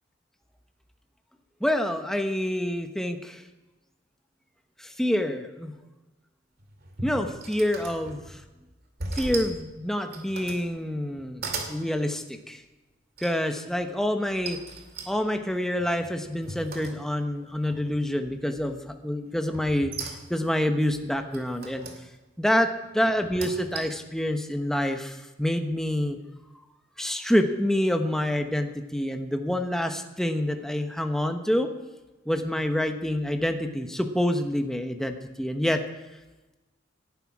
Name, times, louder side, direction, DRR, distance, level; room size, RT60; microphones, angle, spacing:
voice 1, 1.6-3.4 4.8-5.7 7.0-8.4 9.1-12.6 13.2-14.6 15.1-21.9 22.4-22.7 22.9-26.2 27.0-31.7 32.3-35.8, left 1 dB, 5° left, 5 dB, 1.0 m, -27 dB
sound 1, 6.6-8.4 9.0-9.6 10.0-10.7 11.1-11.8 13.2-13.6 14.4-17.3 17.7-18.2 19.5-20.5 21.3-22.0 23.1-24.1, right 3 dB, 55° right, 2.3 m, -38 dB
18.0 x 11.5 x 4.8 m, 1.1 s
head